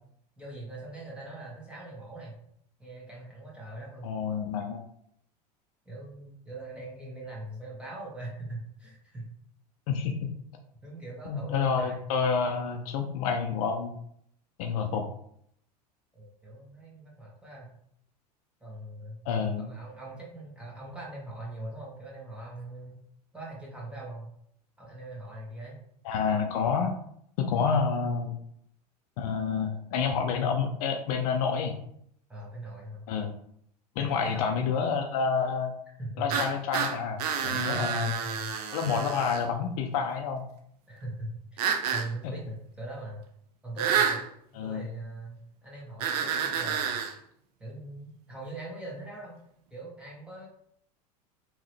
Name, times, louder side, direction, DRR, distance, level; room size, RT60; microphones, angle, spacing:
voice 1, 0.4-2.4 2.8-4.1 5.8-9.3 10.8-11.9 16.1-17.7 18.6-19.2 19.6-22.9 23.3-24.2 24.8-25.8 32.3-33.0 33.9-34.9 36.0-36.2 37.5-38.5 40.9-43.2 43.6-44.2 44.5-47.0 47.6-49.4 49.7-50.5, right 2 dB, 5° right, -4 dB, 1.6 m, -41 dB
voice 2, 4.0-4.8 9.9-10.1 11.3-14.0 14.6-15.1 19.3-19.7 26.0-26.9 27.4-28.4 29.2-31.8 33.1-33.3 34.0-35.7 36.2-38.1 38.7-40.4 44.5-44.9, left 6 dB, 55° left, 4 dB, 0.5 m, -28 dB
sound 1, 36.3-39.5 41.6-42.1 43.8-44.2 46.0-47.1, right 7 dB, 65° right, 0.6 m, -29 dB
3.6 x 3.0 x 3.2 m, 0.70 s
hypercardioid pair, 90°, 21 cm